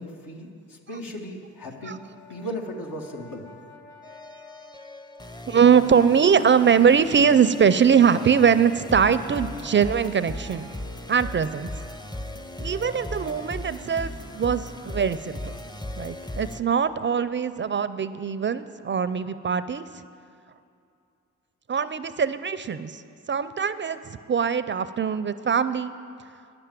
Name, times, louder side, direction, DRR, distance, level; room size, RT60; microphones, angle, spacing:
voice 1, 0.0-2.0 2.3-3.5, equal, 70° left, 1 dB, 1.4 m, -36 dB
Brass instrument, 1.6-5.8, left 3 dB, 55° left, 1.8 m, -51 dB
sound 1, 4.0-16.6, left 1 dB, 10° left, 0.7 m, -38 dB
voice 2, 5.5-10.7 11.1-11.7 12.6-15.5 16.0-20.0 21.7-23.0 23.3-24.0 24.3-25.9, right 7 dB, 35° right, 14 dB, 0.5 m, -22 dB
9.8 x 6.8 x 9.0 m, 2.5 s
supercardioid pair, 45°, 34 cm